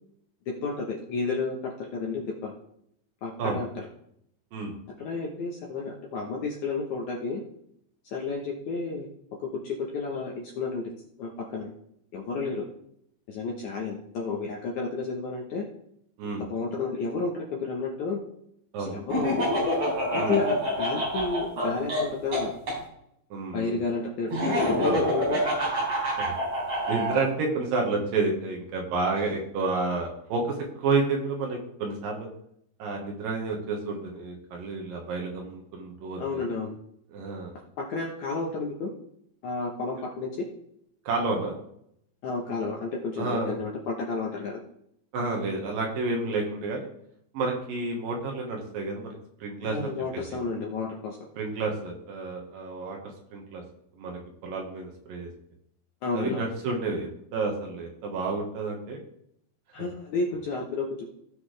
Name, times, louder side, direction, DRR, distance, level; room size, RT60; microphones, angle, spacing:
voice 1, 0.5-2.5 3.2-3.8 5.0-7.4 8.0-9.1 9.6-10.9 11.2-11.7 12.1-12.7 13.3-15.7 16.5-18.2 18.8-19.5 20.1-22.5 23.5-25.4 29.2-29.3 36.2-36.7 37.8-38.9 39.4-40.5 42.2-44.6 49.6-51.2 56.0-56.5 59.7-61.1, left 4 dB, 70° left, -1 dB, 1.9 m, -31 dB
Laughter, 19.1-22.8 24.3-27.2, equal, 30° right, 4.3 m, -27 dB
voice 2, 23.3-23.8 24.8-25.0 26.2-26.3 26.9-32.3 32.8-36.4 37.1-37.5 41.0-41.6 43.2-43.5 45.1-46.9 47.3-49.1 49.4-49.9 51.4-53.0 53.3-53.6 54.0-55.3 56.1-59.0, right 3 dB, 65° right, 0 dB, 2.9 m, -30 dB
16.5 x 6.1 x 3.3 m, 0.73 s
omnidirectional pair, 4.6 m